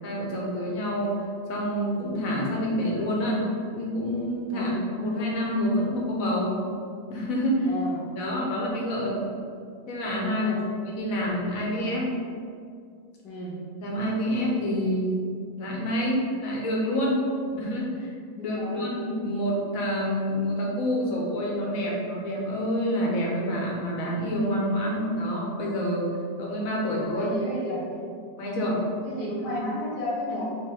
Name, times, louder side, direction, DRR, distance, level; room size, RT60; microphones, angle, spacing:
voice 1, 0.0-1.2 1.5-3.4 3.7-6.6 7.1-7.7 8.2-9.3 9.9-10.5 10.8-12.1 13.8-15.1 15.6-17.3 17.6-18.1 18.4-26.1 26.4-27.3 28.4-28.8 29.5-29.7 30.3-30.4, equal, 60° left, -3 dB, 1.2 m, -27 dB
voice 2, 4.5-4.8 7.6-8.0 10.3-10.6 13.2-13.6 17.5-17.6 18.4-18.9 26.6-28.1 29.0-30.4, left 1 dB, 75° left, -7 dB, 1.4 m, -33 dB
3.3 x 3.1 x 4.5 m, 2.3 s
omnidirectional pair, 1.8 m